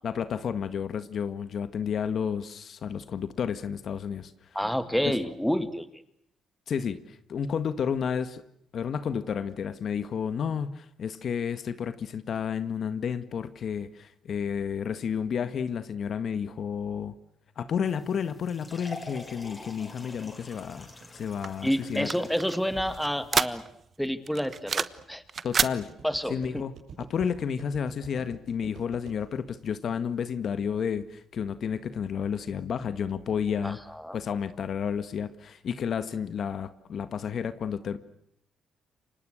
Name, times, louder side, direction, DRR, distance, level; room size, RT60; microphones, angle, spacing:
voice 1, 0.0-4.3 5.0-5.2 6.7-8.4 8.7-17.1 17.6-22.1 25.4-25.9 26.3-33.8 34.1-38.0, left 7 dB, 60° left, 12 dB, 1.7 m, -31 dB
voice 2, 4.5-5.8 21.6-23.6 24.0-25.2 26.0-26.6 33.6-34.2, equal, ahead, 11 dB, 2.4 m, -29 dB
sound 1, 17.8-23.4, left 2 dB, 20° left, 6.9 m, -46 dB
sound 2, 20.0-31.5, right 5 dB, 70° right, 7.4 m, -50 dB
sound 3, 21.4-23.9 24.3-25.0 25.3-25.8, right 6 dB, 45° right, 1.2 m, -29 dB
29.0 x 25.0 x 6.5 m, 0.72 s
cardioid pair, 90°, 0 cm